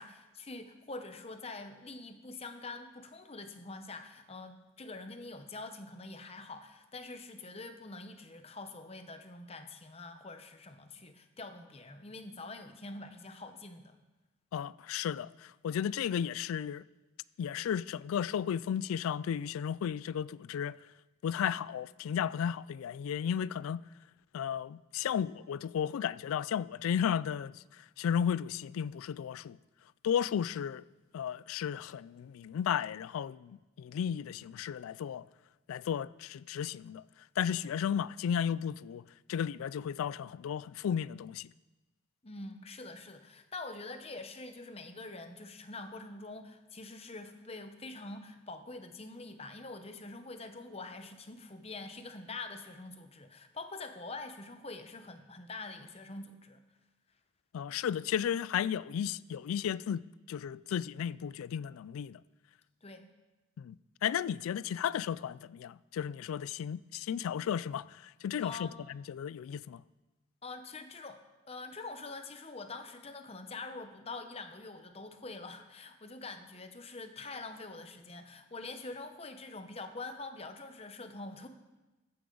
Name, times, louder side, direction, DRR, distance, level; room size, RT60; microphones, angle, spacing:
voice 1, 0.0-14.0 42.2-56.6 62.8-63.1 68.4-68.8 70.4-81.5, left 3 dB, 30° left, 0.8 m, -45 dB
voice 2, 14.5-16.8 17.4-20.8 21.2-23.8 24.3-27.5 28.0-29.6 30.0-30.8 31.1-35.3 35.7-37.0 37.4-39.0 39.3-41.5 57.5-60.0 60.3-62.2 63.6-63.8 64.0-68.7 68.9-69.8, left 8 dB, 85° left, 0.3 m, -34 dB
15.0 x 8.5 x 3.9 m
head